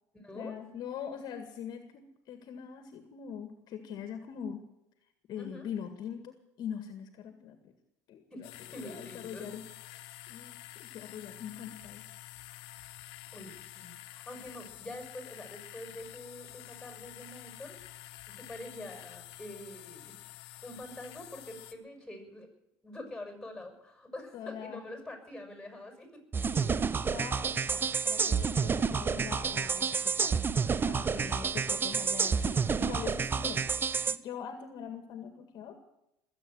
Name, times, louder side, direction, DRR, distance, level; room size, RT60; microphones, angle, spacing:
voice 1, 0.3-4.6 5.3-7.7 8.1-9.6 9.9-12.0 24.3-24.8 26.4-26.7 27.1-30.3 30.9-33.7 34.1-35.8, left 8 dB, 55° left, 8 dB, 1.9 m, -42 dB
voice 2, 5.4-5.7 8.3-8.5 8.7-9.5 13.3-17.8 18.3-20.2 20.6-22.5 22.8-26.2 30.9-31.3, left 1 dB, 5° left, 5 dB, 6.6 m, -45 dB
sound 1, 8.4-21.7, left 16 dB, 70° left, 1.5 m, -49 dB
sound 2, 26.3-34.2, right 5 dB, 25° right, 0.7 m, -29 dB
21.5 x 8.5 x 7.9 m, 0.85 s
supercardioid pair, 90°, 9 cm